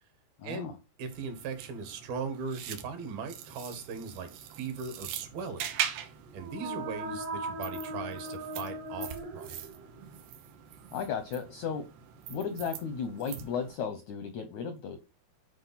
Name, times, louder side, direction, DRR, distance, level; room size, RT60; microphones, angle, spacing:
voice 1, 0.4-0.7 10.9-11.9 12.3-15.0, left 6 dB, 80° left, 1.6 m, -35 dB
voice 2, 1.0-4.3 4.6-9.5, right 5 dB, 70° right, 3.4 m, -39 dB
sound 1, 1.1-13.8, right 10 dB, 90° right, 3.1 m, -42 dB
sound 2, 6.3-10.1, right 1 dB, 55° right, 1.2 m, -39 dB
10.5 x 4.9 x 4.1 m
omnidirectional pair, 4.5 m